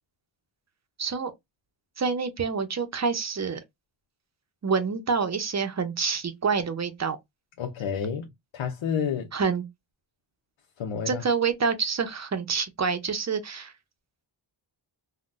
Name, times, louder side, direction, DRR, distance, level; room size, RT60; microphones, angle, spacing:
voice 1, 1.0-1.3 2.0-3.6 4.6-7.2 9.3-9.6 11.1-13.7, right 5 dB, 35° right, 0.6 m, -27 dB
voice 2, 7.6-9.3 10.8-11.2, left 7 dB, 85° left, 0.7 m, -30 dB
3.7 x 2.2 x 2.4 m
wide cardioid pair, 110°, 47 cm